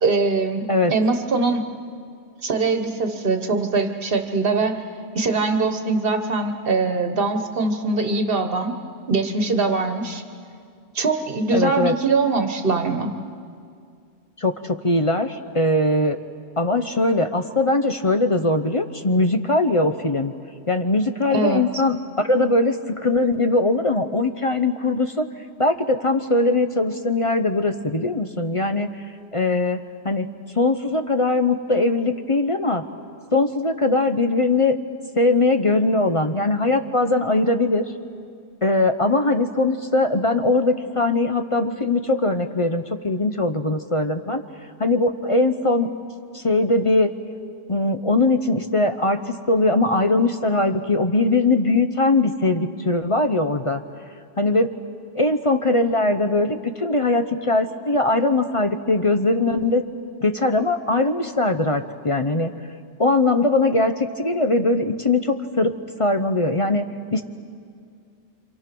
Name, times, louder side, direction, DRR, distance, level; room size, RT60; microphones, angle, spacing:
voice 1, 0.0-1.6 2.4-4.8 5.1-8.8 9.1-10.2 10.9-13.1 21.3-21.6, right 3 dB, 50° right, 6 dB, 1.6 m, -22 dB
voice 2, 11.5-12.0 14.4-16.2 16.6-20.3 20.7-25.3 25.6-29.0 29.3-29.8 30.0-30.3 30.5-32.9 33.3-34.8 35.1-37.9 38.6-44.4 44.8-45.9 46.3-47.1 47.7-53.8 54.4-54.7 55.1-59.8 60.2-62.5 63.0-65.7 66.0-66.8 67.1-67.2, left 2 dB, 30° left, 7 dB, 0.7 m, -21 dB
27.0 x 26.5 x 6.1 m, 2.3 s
omnidirectional pair, 1.2 m